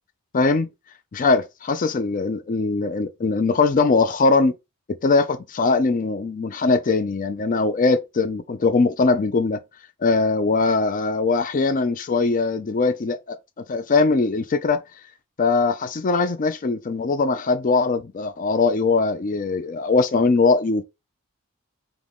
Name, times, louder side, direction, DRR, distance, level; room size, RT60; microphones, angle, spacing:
voice 1, 0.3-0.7 1.1-4.5 5.0-9.6 10.0-13.4 13.7-14.8 15.4-20.8, left 3 dB, 35° left, 0.4 m, -21 dB
3.7 x 3.0 x 3.5 m
head